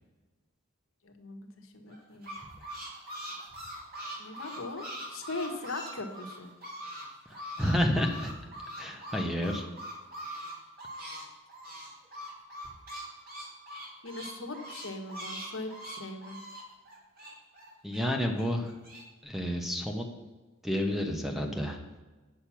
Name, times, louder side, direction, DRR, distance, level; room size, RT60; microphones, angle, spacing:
voice 1, 1.0-2.3 4.2-6.5 14.0-16.4, left 2 dB, 85° left, 4 dB, 1.3 m, -40 dB
sound 1, 1.9-7.1 7.3-11.2 11.5-18.0 18.4-19.0, equal, 45° right, 2.9 m, -42 dB
voice 2, 7.3-8.3 8.8-9.6 17.8-18.7 19.2-20.1 20.6-21.8, equal, ahead, 3 dB, 1.0 m, -30 dB
8.7 x 6.5 x 5.8 m, 1.2 s
head